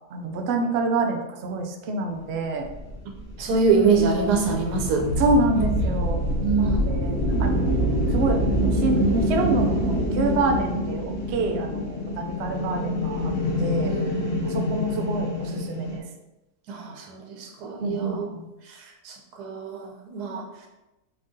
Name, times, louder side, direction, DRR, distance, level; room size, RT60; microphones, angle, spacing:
voice 1, 0.1-2.7 5.2-6.2 6.9-7.1 7.4-13.2 13.6-13.9 14.4-16.0 17.8-18.4, right 2 dB, 65° right, 3 dB, 0.6 m, -27 dB
sound 1, 2.6-16.0, equal, 55° left, 0.6 m, -26 dB
voice 2, 3.4-5.1 5.5-5.7 6.4-6.9 13.8-14.1 16.7-18.3 18.6-20.7, right 4 dB, 85° right, 2 dB, 1.3 m, -25 dB
4.4 x 2.7 x 3.6 m, 0.98 s
omnidirectional pair, 1.7 m